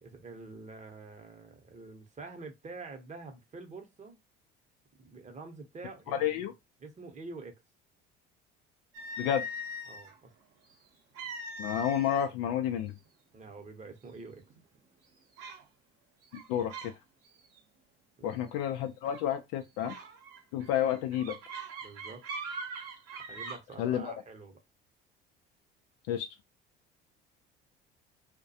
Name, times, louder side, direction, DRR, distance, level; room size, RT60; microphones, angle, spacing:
voice 1, 0.0-4.2 5.0-6.5 6.8-7.6 9.9-10.3 13.3-14.4 18.2-18.4 21.8-22.2 23.3-24.6, right 3 dB, 25° right, 0.8 m, -47 dB
voice 2, 6.1-6.5 9.2-9.5 11.6-12.9 16.3-16.9 18.2-20.0 20.5-21.4 23.8-24.1 26.1-26.3, left 10 dB, 60° left, 0.4 m, -30 dB
sound 1, 8.9-10.1 11.2-12.3 12.6-12.9 13.6-13.7 14.2-14.6 15.4-15.6 16.2-17.0 17.3-17.6 19.1-19.3 19.8-23.6, right 1 dB, 55° right, 0.8 m, -41 dB
2.3 x 2.2 x 2.7 m
hypercardioid pair, 65°, 29 cm